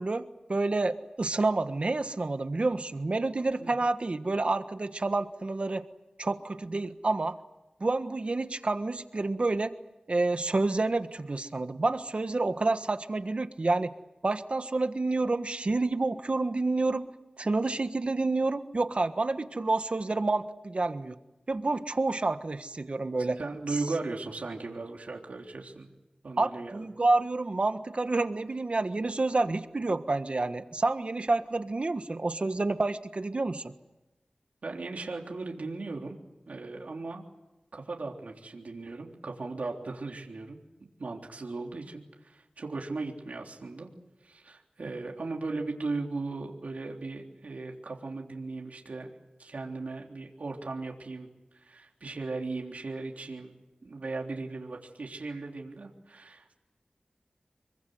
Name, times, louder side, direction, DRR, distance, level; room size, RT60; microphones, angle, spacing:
voice 1, 0.0-5.8 6.2-7.4 7.8-9.7 10.1-13.9 14.2-17.1 17.4-21.1 21.5-23.4 26.4-33.7, right 3 dB, 50° right, 9 dB, 1.4 m, -29 dB
voice 2, 23.2-25.9 26.2-26.9 34.6-36.2 36.5-37.2 37.7-40.6 41.0-43.9 44.2-49.1 49.4-53.5 53.8-56.5, right 3 dB, 75° right, 1 dB, 3.5 m, -37 dB
26.5 x 23.5 x 7.9 m, 1.0 s
wide cardioid pair, 70°, 2 cm